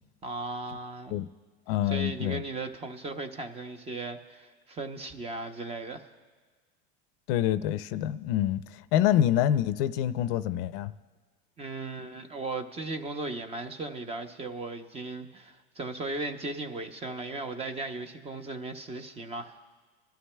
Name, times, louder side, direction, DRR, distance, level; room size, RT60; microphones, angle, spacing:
voice 1, 0.2-1.2 1.9-6.1 11.6-19.6, right 3 dB, 20° right, 8 dB, 0.7 m, -37 dB
voice 2, 1.7-2.4 7.3-10.9, left 11 dB, 60° left, 14 dB, 0.5 m, -26 dB
24.5 x 13.0 x 2.2 m, 1.4 s
supercardioid pair, 140°, 33 cm